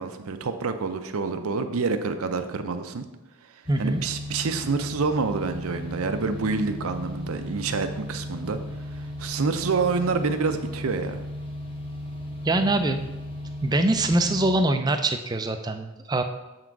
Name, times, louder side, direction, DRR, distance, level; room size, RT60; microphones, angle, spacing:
voice 1, 0.0-3.0 3.8-8.6 8.9-11.2, right 4 dB, 80° right, 8 dB, 0.6 m, -27 dB
sound 1, 3.6-14.5, left 1 dB, 25° left, 0.8 m, -35 dB
voice 2, 3.7-4.0 12.4-13.0 13.6-16.2, right 2 dB, 20° right, 7 dB, 0.3 m, -23 dB
7.3 x 3.9 x 4.6 m, 1.0 s
head